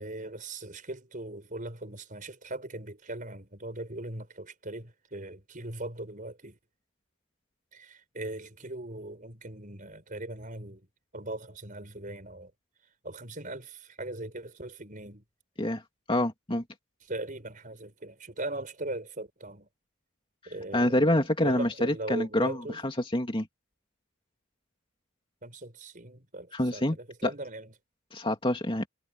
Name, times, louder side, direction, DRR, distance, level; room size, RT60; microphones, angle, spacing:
voice 1, 0.0-6.6 7.7-10.9 11.1-12.5 13.0-15.2 17.1-19.7 20.5-22.8 25.4-27.7, right 2 dB, 35° right, 5.6 m, -39 dB
voice 2, 16.1-16.6 20.7-22.6 22.8-23.5 26.5-27.0 27.2-27.3 28.1-28.9, left 1 dB, 25° left, 2.6 m, -26 dB
head